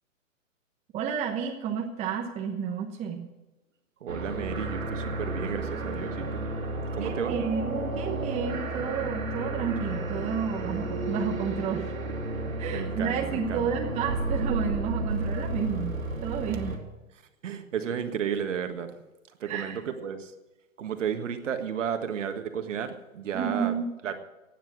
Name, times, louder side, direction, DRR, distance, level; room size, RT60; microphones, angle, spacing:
voice 1, 0.9-3.3 7.0-11.9 12.6-15.9 16.2-16.7 19.4-19.8 23.3-23.9, right 7 dB, 15° right, 2 dB, 1.1 m, -31 dB
voice 2, 4.0-6.4 6.9-7.4 12.7-13.7 17.4-18.9 19.4-20.3 20.8-23.7 24.0-24.2, right 8 dB, 65° right, 7 dB, 1.8 m, -33 dB
sound 1, 4.1-16.8, right 2 dB, 85° right, 2.9 m, -32 dB
16.0 x 9.1 x 6.3 m, 1.1 s
hypercardioid pair, 125°, 40 cm